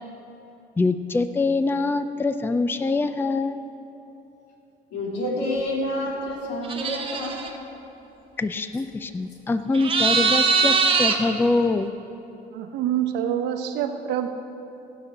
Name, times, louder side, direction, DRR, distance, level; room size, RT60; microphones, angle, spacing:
voice 1, 0.8-3.6 8.4-11.9, left 3 dB, 10° left, 10 dB, 0.4 m, -24 dB
voice 2, 4.9-7.4, left 1 dB, 85° left, -2 dB, 2.8 m, -28 dB
sound 1, 6.6-7.5 9.7-11.2, right 5 dB, 35° right, 1.2 m, -21 dB
voice 3, 12.5-14.3, right 10 dB, 85° right, 6 dB, 1.0 m, -26 dB
18.0 x 6.0 x 6.4 m, 2.9 s
cardioid pair, 110°, 17 cm